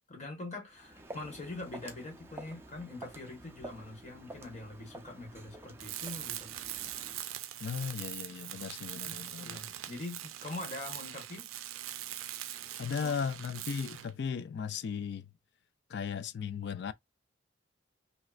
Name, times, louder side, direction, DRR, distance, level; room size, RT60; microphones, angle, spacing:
voice 1, 0.1-6.5 9.0-11.5 12.9-13.1, left 2 dB, 35° left, 1.3 m, -43 dB
Walk footsteps, 0.7-7.3, right 2 dB, 10° right, 0.4 m, -50 dB
Tools, 5.8-14.2, right 12 dB, 80° right, 0.4 m, -42 dB
voice 2, 7.6-9.6 12.8-15.3 15.9-16.9, left 6 dB, 55° left, 0.3 m, -36 dB
3.1 x 2.8 x 2.4 m
head